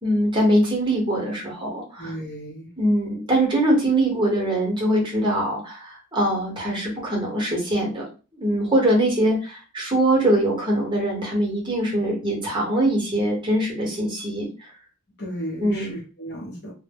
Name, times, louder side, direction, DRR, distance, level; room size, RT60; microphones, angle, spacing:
voice 1, 0.0-2.1 2.8-8.0 8.4-14.7 15.6-15.9, right 1 dB, 20° right, -2 dB, 0.9 m, -22 dB
voice 2, 2.0-2.7 15.2-16.7, equal, 55° left, -2 dB, 0.9 m, -34 dB
2.1 x 2.0 x 3.4 m, 0.34 s
head